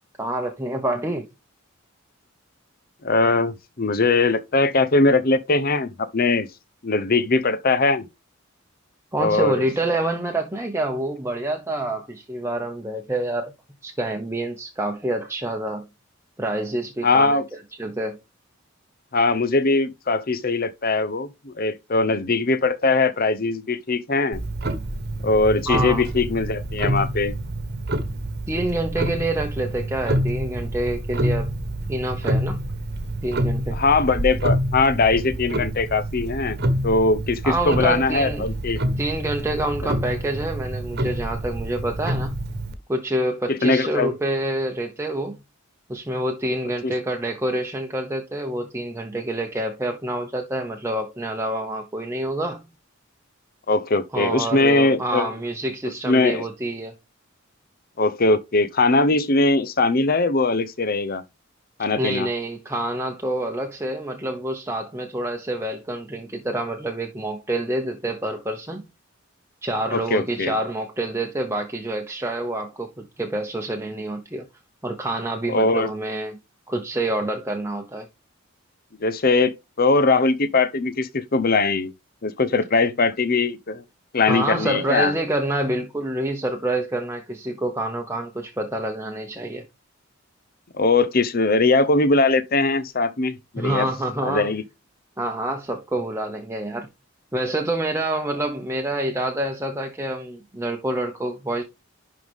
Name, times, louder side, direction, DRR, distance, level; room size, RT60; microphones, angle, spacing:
voice 1, 0.2-1.3 9.1-13.5 13.8-15.9 16.4-18.2 25.7-26.1 28.5-31.5 31.9-32.6 33.2-33.8 37.4-38.5 39.0-42.3 42.9-45.4 45.9-52.6 54.1-56.9 62.0-68.8 69.6-74.5 74.8-76.4 76.7-78.1 84.3-89.6 93.6-94.5 95.2-96.9 97.3-101.6, right 1 dB, 15° right, 0.9 m, -27 dB
voice 2, 3.0-6.5 6.8-8.1 9.2-9.6 17.0-17.5 19.1-24.4 25.2-27.3 33.7-38.8 43.5-44.1 46.8-46.9 53.7-55.3 56.0-56.5 58.0-61.2 61.8-62.3 69.9-70.5 75.5-75.9 79.0-81.9 82.2-83.8 84.1-85.1 90.8-93.9 94.2-94.6, left 3 dB, 45° left, 0.8 m, -21 dB
Clock, 24.3-42.7, right 1 dB, 50° right, 1.3 m, -27 dB
11.0 x 4.0 x 3.6 m
head